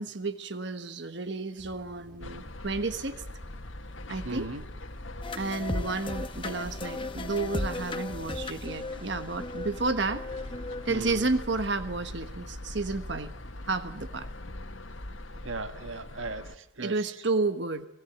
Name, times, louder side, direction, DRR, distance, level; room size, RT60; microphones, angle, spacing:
voice 1, 0.0-3.2 4.1-4.5 5.3-10.3 10.8-13.3 13.6-14.3 16.8-17.9, right 3 dB, 60° right, 1.3 m, -31 dB
sound 1, 1.6-9.8, equal, 5° right, 7.7 m, -53 dB
sound 2, 2.2-16.6, left 1 dB, 80° left, 1.7 m, -42 dB
voice 2, 4.2-4.6 10.9-11.2 15.4-16.9, right 3 dB, 85° right, 1.5 m, -37 dB
sound 3, 5.2-11.3, left 2 dB, 25° left, 1.0 m, -36 dB
29.5 x 20.5 x 8.0 m
head